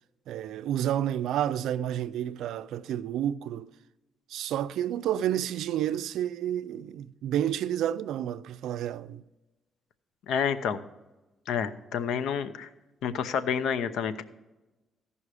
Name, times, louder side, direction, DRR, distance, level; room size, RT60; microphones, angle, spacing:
voice 1, 0.3-3.7 4.3-9.2, right 11 dB, 80° right, 0.4 m, -30 dB
voice 2, 10.3-10.8 11.5-12.7 13.0-14.2, left 7 dB, 80° left, 0.7 m, -29 dB
15.0 x 5.6 x 4.9 m
cardioid pair, 90°, 0 cm